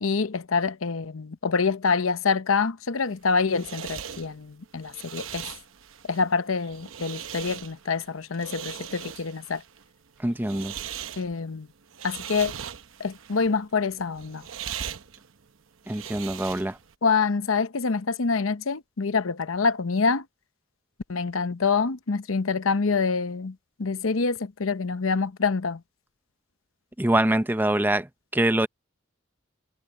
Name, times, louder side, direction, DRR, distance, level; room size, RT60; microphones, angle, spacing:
voice 1, 0.0-5.4 6.1-9.6 11.2-11.7 12.0-12.5 13.0-14.4 17.0-20.2 21.1-23.5 23.8-25.8, left 4 dB, 85° left, 0.8 m, -26 dB
sound 1, 3.1-16.9, right 9 dB, 80° right, 0.9 m, -40 dB
voice 2, 10.2-10.7 15.9-16.8 27.0-28.7, right 1 dB, 10° right, 0.6 m, -24 dB
head